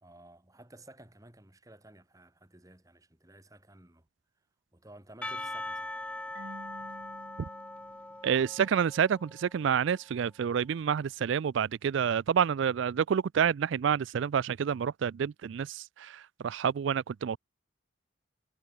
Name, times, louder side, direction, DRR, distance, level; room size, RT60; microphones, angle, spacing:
voice 1, 0.0-4.1 4.7-6.0, right 1 dB, 15° right, 1.8 m, -54 dB
Percussion / Church bell, 5.2-9.8, left 2 dB, 5° left, 0.3 m, -41 dB
Marimba xylophone / Wood, 6.3-9.1, right 1 dB, 90° right, 5.9 m, -52 dB
voice 2, 8.2-17.4, right 7 dB, 70° right, 0.3 m, -28 dB
head